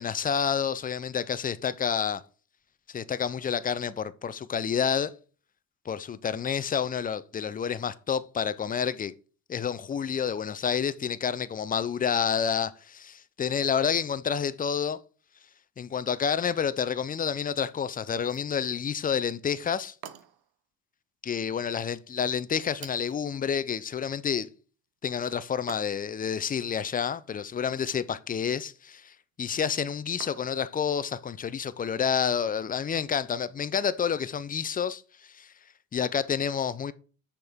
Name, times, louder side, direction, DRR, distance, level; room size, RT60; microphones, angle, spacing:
voice 1, 0.0-2.2 2.9-5.1 5.9-9.1 9.5-15.0 15.8-19.9 21.2-24.5 25.0-29.1 29.4-35.5 35.9-36.9, left 7 dB, 20° left, 0.4 m, -29 dB
sound 1, 18.1-18.6 20.0-20.5 22.8-23.3 25.7-26.2 27.6-28.2 30.2-30.7, right 11 dB, 60° right, 0.8 m, -48 dB
6.2 x 4.4 x 3.5 m
hypercardioid pair, 65°, 44 cm